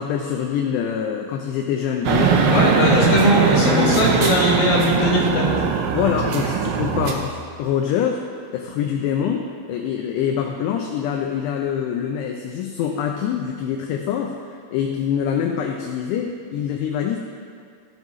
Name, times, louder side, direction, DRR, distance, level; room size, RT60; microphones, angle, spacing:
voice 1, 0.0-4.1 5.9-8.2 8.5-17.2, left 8 dB, 80° left, 2 dB, 2.5 m, -25 dB
sound 1, 2.1-7.1, right 6 dB, 85° right, 3.2 m, -20 dB
voice 2, 2.5-5.5, equal, 50° left, -7 dB, 2.7 m, -19 dB
15.5 x 7.2 x 3.1 m, 2.3 s
omnidirectional pair, 5.4 m